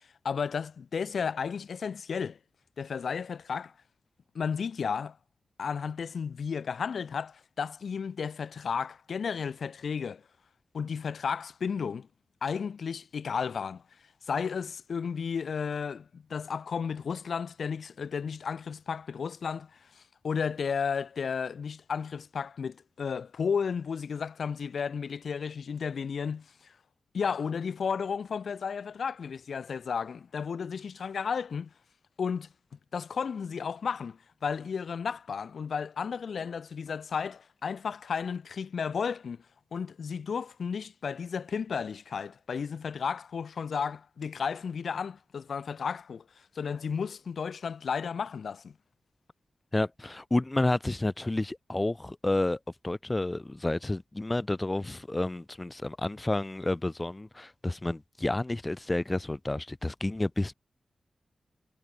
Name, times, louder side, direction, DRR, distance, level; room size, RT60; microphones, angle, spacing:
voice 1, 0.2-2.4 2.8-3.7 4.3-5.2 5.6-10.2 10.7-12.1 12.4-13.8 14.3-26.4 27.1-31.7 32.2-32.5 32.9-39.4 39.7-46.2 46.6-48.7, left 6 dB, 70° left, 2.5 m, -33 dB
voice 2, 49.7-52.6 52.8-60.5, left 2 dB, 15° left, 3.3 m, -30 dB
wide cardioid pair, 175°, 0 cm